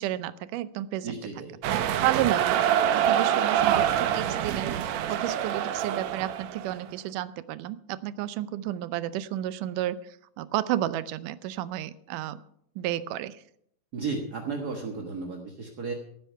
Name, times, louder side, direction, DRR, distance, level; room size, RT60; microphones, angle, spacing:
voice 1, 0.0-1.2 2.0-4.8 5.1-10.0 10.4-12.4 12.8-13.4, right 13 dB, 90° right, 15 dB, 2.3 m, -31 dB
voice 2, 1.0-1.6 13.9-15.9, right 4 dB, 45° right, 1 dB, 1.3 m, -34 dB
sound 1, 1.6-6.8, right 10 dB, 70° right, 2.0 m, -25 dB
17.0 x 9.2 x 5.6 m, 0.69 s
omnidirectional pair, 3.6 m